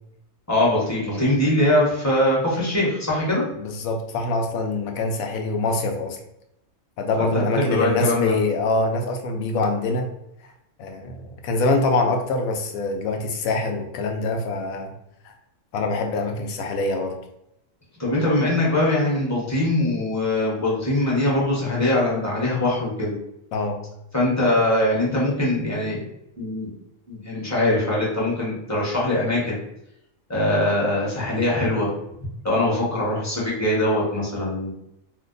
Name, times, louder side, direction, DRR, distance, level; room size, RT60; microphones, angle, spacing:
voice 1, 0.5-3.4 7.2-8.3 18.0-23.2 24.1-26.0 26.4-26.7 27.1-29.5 30.3-31.9 32.4-34.7, left 1 dB, 15° left, -6 dB, 0.9 m, -22 dB
voice 2, 3.6-6.2 7.0-10.1 10.8-14.9 15.2-15.3 15.7-17.1 23.5-23.8, left 2 dB, 85° left, 4 dB, 1.0 m, -24 dB
2.6 x 2.2 x 3.7 m, 0.81 s
omnidirectional pair, 1.4 m